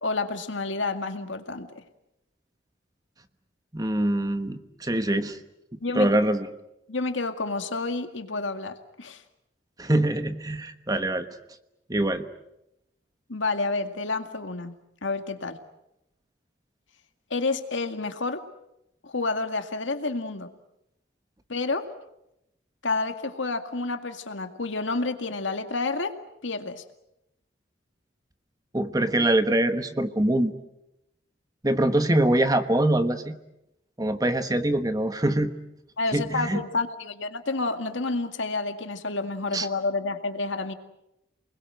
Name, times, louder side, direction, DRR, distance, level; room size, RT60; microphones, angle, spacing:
voice 1, 0.0-1.8 5.8-6.1 6.9-9.2 13.3-14.7 15.0-15.6 17.3-18.4 19.0-20.5 21.5-21.9 22.8-26.2 26.4-26.8 36.0-40.7, left 3 dB, 85° left, 7 dB, 2.1 m, -29 dB
voice 2, 3.7-5.4 5.9-6.5 9.8-11.3 11.9-12.2 28.7-30.5 31.6-33.3 34.0-35.5 36.1-36.6 39.5-39.7, right 1 dB, 20° right, 9 dB, 1.2 m, -24 dB
29.0 x 21.0 x 7.8 m, 0.86 s
head